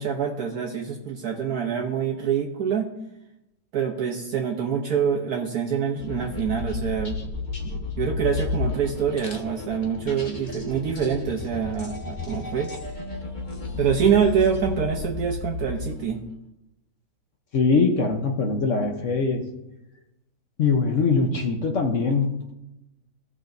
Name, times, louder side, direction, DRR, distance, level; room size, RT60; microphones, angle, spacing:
voice 1, 0.0-2.9 3.7-7.2 7.6-12.7 13.8-16.2, right 7 dB, 65° right, 0 dB, 1.3 m, -25 dB
sound 1, 6.0-16.2, left 3 dB, 35° left, 1.0 m, -32 dB
voice 2, 17.5-19.4 20.6-22.6, left 4 dB, 55° left, 3 dB, 1.1 m, -22 dB
16.5 x 6.2 x 2.6 m, 0.90 s
omnidirectional pair, 1.8 m